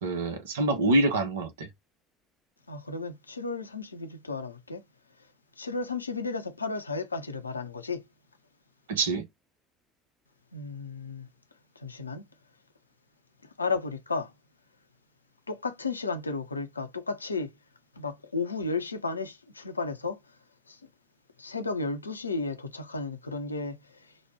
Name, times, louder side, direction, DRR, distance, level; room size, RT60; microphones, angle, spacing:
voice 1, 0.0-1.7 8.9-9.2, right 2 dB, 75° right, 0.7 m, -26 dB
voice 2, 2.7-4.8 5.6-8.0 10.5-11.3 11.8-12.2 13.6-14.3 15.5-17.5 18.0-20.2 20.7-20.8 21.4-24.1, left 3 dB, 85° left, 0.5 m, -33 dB
3.0 x 2.1 x 3.2 m
figure-of-eight pair, 65°, 0 cm